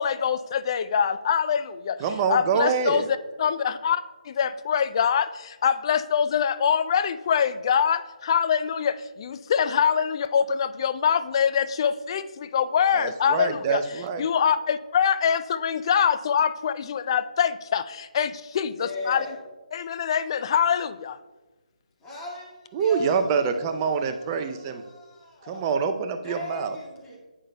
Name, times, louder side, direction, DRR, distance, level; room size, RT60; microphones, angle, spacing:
voice 1, 0.0-2.0 2.3-3.0 3.4-13.8 14.2-19.3 19.7-21.2, left 7 dB, 35° left, 12 dB, 0.4 m, -24 dB
voice 2, 2.0-3.1 12.9-14.3 22.7-24.8 25.5-26.8, right 6 dB, 25° right, 7 dB, 0.5 m, -25 dB
voice 3, 18.7-19.4 22.0-25.6 26.2-27.2, left 2 dB, 15° left, -5 dB, 2.0 m, -39 dB
11.0 x 8.1 x 2.3 m, 1.2 s
figure-of-eight pair, 150°, 4 cm